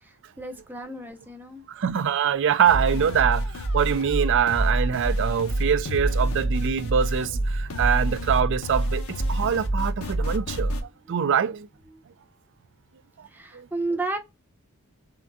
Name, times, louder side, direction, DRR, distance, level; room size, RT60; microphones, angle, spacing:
voice 1, 0.0-1.6 11.9-12.0 13.3-14.2, right 2 dB, 10° right, 0.6 m, -32 dB
voice 2, 1.7-10.7 11.1-11.7 13.2-13.3 13.5-13.7, right 8 dB, 55° right, 0.4 m, -24 dB
sound 1, 2.6-10.8, right 1 dB, 70° left, 0.8 m, -27 dB
3.8 x 2.1 x 2.2 m
head